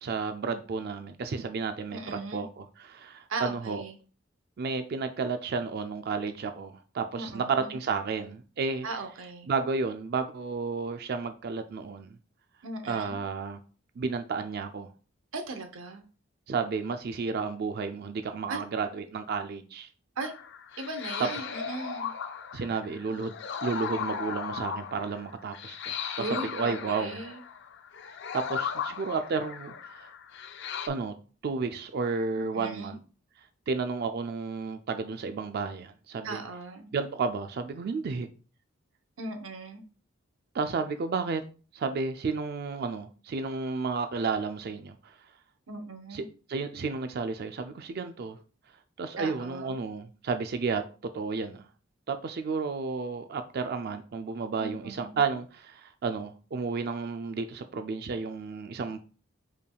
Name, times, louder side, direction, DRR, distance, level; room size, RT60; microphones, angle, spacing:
voice 1, 0.0-3.8 4.6-8.9 9.5-12.2 12.9-13.6 14.0-14.9 16.5-19.9 22.5-23.3 23.6-27.2 28.3-30.1 30.9-31.1 31.4-33.0 33.7-36.4 36.9-38.3 40.5-41.4 41.7-45.1 46.1-46.2 46.5-48.4 49.0-50.8 51.1-51.6 52.1-59.0, right 4 dB, 50° right, 0.3 m, -32 dB
voice 2, 1.9-2.5 3.3-3.9 7.1-7.8 8.8-9.5 12.6-13.2 15.3-16.0 18.5-18.6 20.2-20.3 20.8-22.1 26.2-27.4 32.3-33.0 36.2-36.9 39.2-39.8 45.7-46.3 49.2-49.8 54.6-55.2, right 3 dB, 80° right, 0.8 m, -38 dB
sound 1, 20.2-30.9, left 7 dB, 60° left, 0.4 m, -37 dB
5.3 x 3.3 x 2.3 m
head